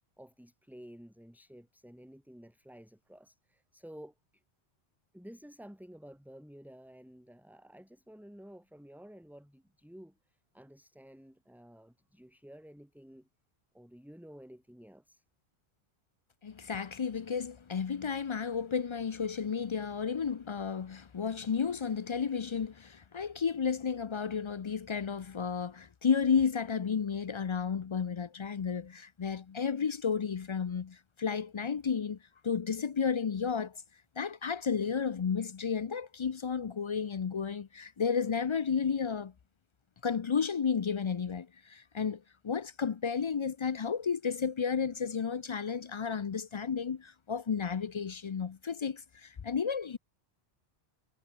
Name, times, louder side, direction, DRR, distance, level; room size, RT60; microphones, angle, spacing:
voice 1, 0.2-4.4 5.1-13.3 13.7-15.2, equal, ahead, 2.6 m, -52 dB
voice 2, 16.4-32.2 32.4-33.8 34.2-39.3 40.0-50.0, left 6 dB, 45° left, 0.4 m, -32 dB
omnidirectional pair, 1.1 m